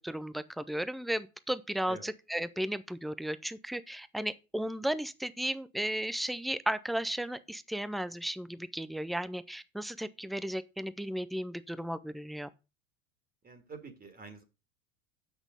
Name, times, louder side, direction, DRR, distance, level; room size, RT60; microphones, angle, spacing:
voice 1, 0.0-12.5, right 1 dB, ahead, 0.4 m, -35 dB
voice 2, 13.4-14.4, right 4 dB, 20° right, 1.9 m, -47 dB
7.9 x 6.3 x 5.2 m
hypercardioid pair, 90°, 41 cm